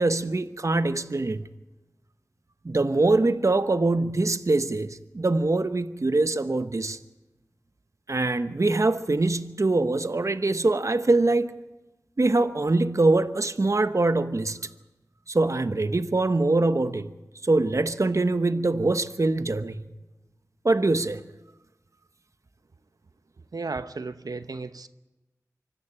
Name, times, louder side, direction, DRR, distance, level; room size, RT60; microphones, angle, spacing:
voice 1, 0.0-1.4 2.6-7.0 8.1-11.6 12.2-14.6 15.3-17.1 17.4-19.8 20.6-21.2, right 2 dB, 55° right, 1.0 m, -23 dB
voice 2, 23.5-24.9, right 4 dB, 85° right, 0.8 m, -34 dB
25.0 x 14.0 x 8.9 m
wide cardioid pair, 45°, 6 cm